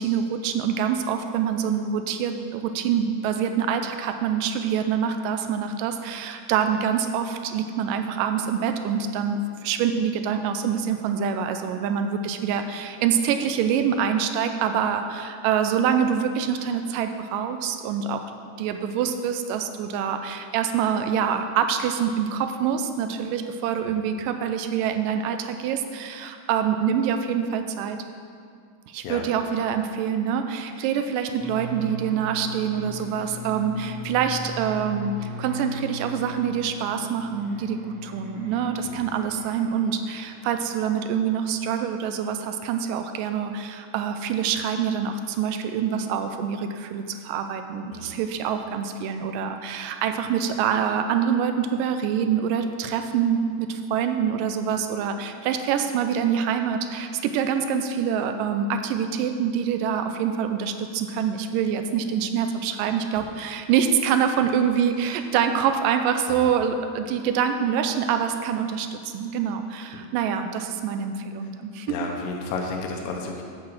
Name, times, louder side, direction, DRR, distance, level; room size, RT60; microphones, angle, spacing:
voice 1, 0.0-18.3 18.6-28.0 28.9-72.0, right 7 dB, 90° right, 7 dB, 2.2 m, -25 dB
sound 1, 31.4-41.0, equal, 30° right, 2.4 m, -39 dB
voice 2, 71.9-73.4, left 3 dB, 90° left, 1 dB, 2.6 m, -32 dB
8.8 x 6.1 x 7.5 m, 2.2 s
omnidirectional pair, 3.8 m